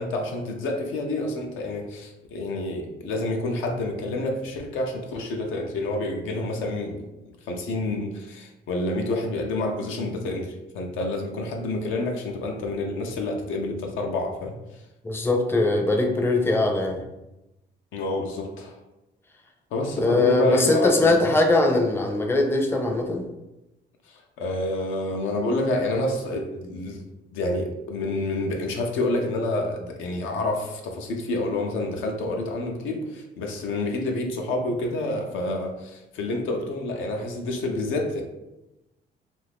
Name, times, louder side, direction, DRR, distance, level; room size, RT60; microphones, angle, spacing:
voice 1, 0.0-14.6 17.9-18.7 19.7-21.2 24.1-27.0 27.3-38.2, left 2 dB, 85° left, 2 dB, 0.6 m, -28 dB
voice 2, 15.0-17.0 20.0-23.2, left 2 dB, 10° left, 2 dB, 0.5 m, -21 dB
2.6 x 2.4 x 3.3 m, 0.95 s
cardioid pair, 90°, 20 cm